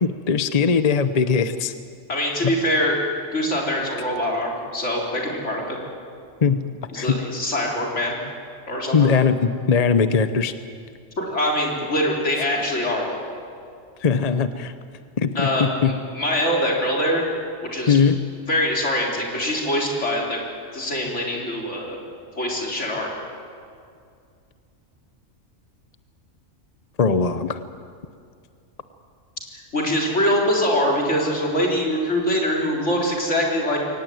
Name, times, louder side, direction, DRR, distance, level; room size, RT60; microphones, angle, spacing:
voice 1, 0.0-1.7 6.4-6.6 7.0-7.2 8.9-10.5 14.0-14.7 15.2-15.9 17.9-18.2 27.0-27.6, left 5 dB, 35° left, 11 dB, 0.7 m, -20 dB
voice 2, 2.1-3.0 3.3-5.8 6.9-8.2 8.7-9.2 11.2-13.3 15.3-17.3 17.7-18.0 18.5-20.4 20.7-22.0 22.4-23.1 29.5-33.8, equal, 60° left, -1 dB, 4.3 m, -23 dB
23.0 x 18.5 x 9.3 m, 2.3 s
omnidirectional pair, 1.4 m